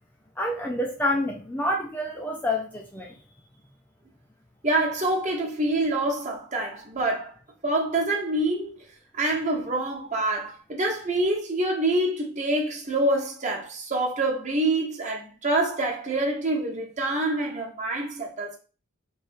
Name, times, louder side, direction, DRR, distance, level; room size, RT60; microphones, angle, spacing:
voice 1, 0.4-3.2, left 1 dB, 10° left, 0.4 m, -28 dB
voice 2, 4.6-7.3 7.6-8.8 9.2-18.6, right 2 dB, 35° right, 1.0 m, -26 dB
3.3 x 3.0 x 4.5 m
head